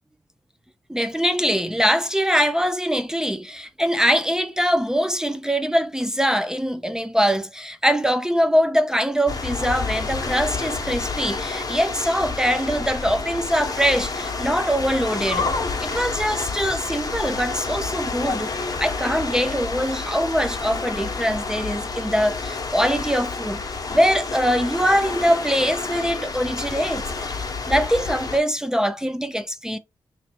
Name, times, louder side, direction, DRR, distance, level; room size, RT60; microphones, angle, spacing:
voice 1, 0.9-23.6 23.9-27.4 27.7-29.8, equal, 5° right, 0.4 m, -23 dB
sound 1, 9.3-28.4, left 4 dB, 45° left, 0.9 m, -29 dB
3.1 x 2.8 x 4.3 m
cardioid pair, 60°, 8 cm